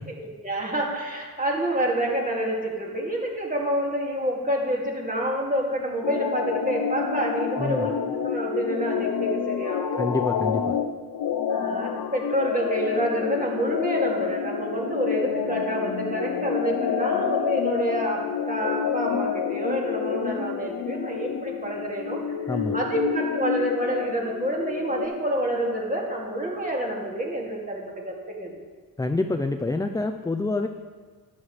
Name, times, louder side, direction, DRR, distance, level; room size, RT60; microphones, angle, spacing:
voice 1, 0.1-10.2 11.5-22.2 22.7-28.5, right 1 dB, 20° right, -2 dB, 2.3 m, -28 dB
sound 1, 6.0-25.1, left 7 dB, 65° left, 0.6 m, -28 dB
voice 2, 10.0-10.8 22.5-22.8 29.0-30.7, left 2 dB, 10° left, 7 dB, 0.4 m, -27 dB
12.0 x 11.0 x 3.2 m, 1.5 s
wide cardioid pair, 100°, 38 cm